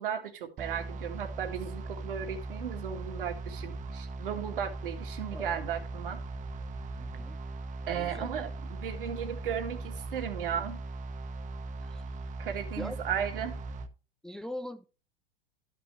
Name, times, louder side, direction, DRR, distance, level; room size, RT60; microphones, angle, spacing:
voice 1, 0.0-6.2 7.9-10.8 12.4-13.6, right 8 dB, 65° right, 2.1 m, -35 dB
sound 1, 0.6-13.9, right 2 dB, 25° right, 1.0 m, -39 dB
voice 2, 7.0-7.4 7.9-8.3 11.8-12.0 12.8-13.0 14.2-14.9, left 1 dB, ahead, 0.5 m, -41 dB
13.5 x 6.0 x 3.2 m
figure-of-eight pair, 85°, 29 cm